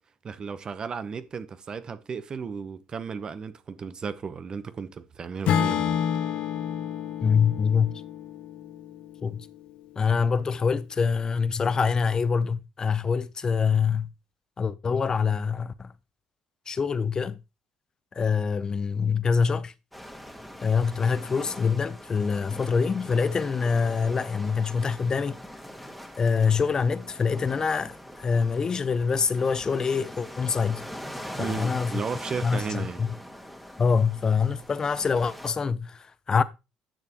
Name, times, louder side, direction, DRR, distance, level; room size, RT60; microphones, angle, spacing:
voice 1, 0.2-6.0 31.4-33.0, right 6 dB, 40° right, 1.0 m, -34 dB
Acoustic guitar / Strum, 5.5-9.7, left 9 dB, 70° left, 0.9 m, -29 dB
voice 2, 7.2-8.0 9.2-9.5 10.0-14.1 14.6-15.9 16.7-17.4 18.1-19.7 20.6-25.4 26.2-30.8 31.4-31.9 32.4-33.1 33.8-36.4, left 5 dB, 35° left, 0.7 m, -25 dB
sound 1, 19.9-35.5, equal, ahead, 1.7 m, -42 dB
10.5 x 6.8 x 3.0 m
supercardioid pair, 75°, 2 cm